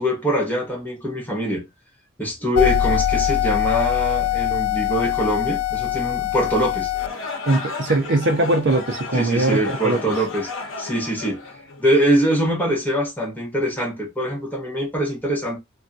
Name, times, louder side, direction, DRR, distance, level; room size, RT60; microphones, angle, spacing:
voice 1, 0.0-1.7 2.2-6.9 9.1-10.5 10.8-11.4 11.8-15.6, equal, 10° left, 1.2 m, -23 dB
sound 1, 2.6-7.1, left 11 dB, 85° left, 0.3 m, -22 dB
sound 2, 6.9-12.1, left 3 dB, 70° left, 0.8 m, -33 dB
voice 2, 7.5-10.0, right 2 dB, 60° right, 0.6 m, -21 dB
3.4 x 2.3 x 2.6 m
head